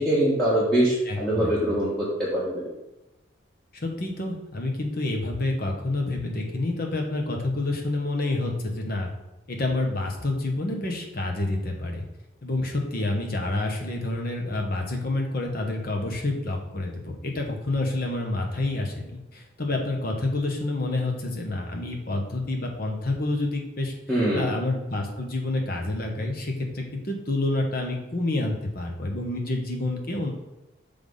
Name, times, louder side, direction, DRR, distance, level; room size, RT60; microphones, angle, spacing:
voice 1, 0.0-2.6 24.1-24.5, right 1 dB, 5° left, -9 dB, 1.1 m, -23 dB
voice 2, 1.1-1.8 3.7-9.1 9.5-12.0 12.4-23.9 24.3-30.3, left 2 dB, 45° left, 2 dB, 1.0 m, -28 dB
5.7 x 3.5 x 5.4 m, 0.99 s
head